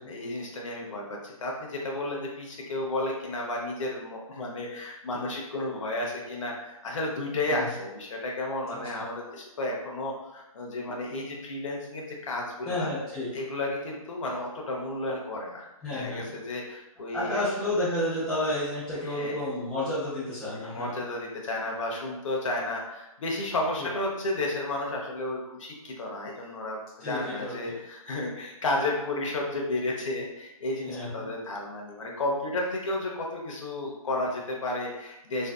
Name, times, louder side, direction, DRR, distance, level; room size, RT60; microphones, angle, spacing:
voice 1, 0.0-12.9 13.3-17.4 19.0-19.3 20.6-35.5, left 2 dB, 60° left, -1 dB, 0.6 m, -32 dB
voice 2, 8.7-9.0 12.6-13.3 15.8-16.4 17.1-20.9 23.8-23.9 27.0-27.7 30.9-31.3, left 1 dB, 5° left, -13 dB, 0.5 m, -31 dB
2.5 x 2.2 x 2.2 m, 0.96 s
hypercardioid pair, 165°, 18 cm